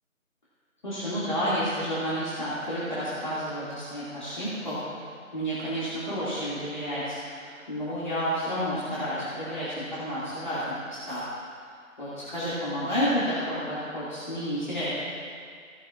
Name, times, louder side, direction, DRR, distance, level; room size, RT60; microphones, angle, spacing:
voice 1, 0.8-11.2 12.0-14.9, equal, 35° left, -11 dB, 2.4 m, -30 dB
15.5 x 13.0 x 2.5 m, 2.1 s
figure-of-eight pair, 160°, 42 cm